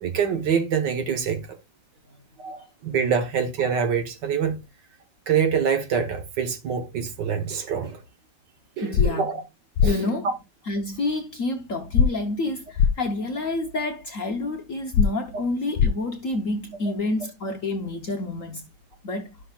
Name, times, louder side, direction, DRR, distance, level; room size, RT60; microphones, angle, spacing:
voice 1, 0.0-1.5 2.4-4.6 5.3-8.0 8.8-9.4 9.8-9.9, right 7 dB, 60° right, 1.6 m, -25 dB
voice 2, 8.8-9.3 9.8-10.3 10.6-18.6 19.0-19.3, left 2 dB, 55° left, 1.0 m, -28 dB
sound 1, 8.9-9.1 9.8-9.9 11.9-12.1 12.8-12.9 14.9-15.1 15.8-15.9, left 7 dB, 90° left, 1.4 m, -18 dB
12.0 x 5.9 x 2.3 m
omnidirectional pair, 2.2 m